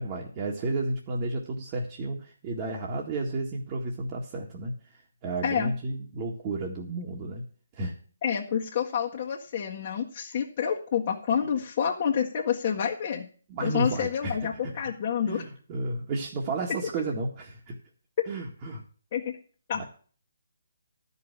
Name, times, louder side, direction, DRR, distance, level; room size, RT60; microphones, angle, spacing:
voice 1, 0.0-7.4 7.7-8.0 13.5-14.4 14.6-14.7 15.3-17.8 18.3-18.8 19.8-19.9, right 2 dB, 30° right, -3 dB, 1.9 m, -32 dB
voice 2, 8.2-13.3 13.6-15.4 19.1-19.4 19.7-19.8, left 8 dB, 35° left, -2 dB, 1.7 m, -28 dB
12.5 x 5.6 x 8.0 m, 0.43 s
figure-of-eight pair, 145°, 0 cm